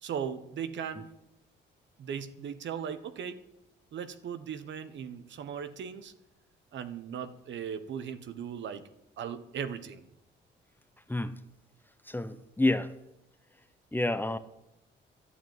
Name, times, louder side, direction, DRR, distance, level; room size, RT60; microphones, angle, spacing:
voice 1, 0.0-1.1 2.0-3.4 3.9-6.1 6.7-8.9 9.2-10.1, right 7 dB, 65° right, 1.3 m, -38 dB
voice 2, 11.1-11.4 12.1-12.9 13.9-14.4, left 2 dB, 10° left, 0.9 m, -29 dB
11.5 x 8.9 x 9.1 m
cardioid pair, 90°, 20 cm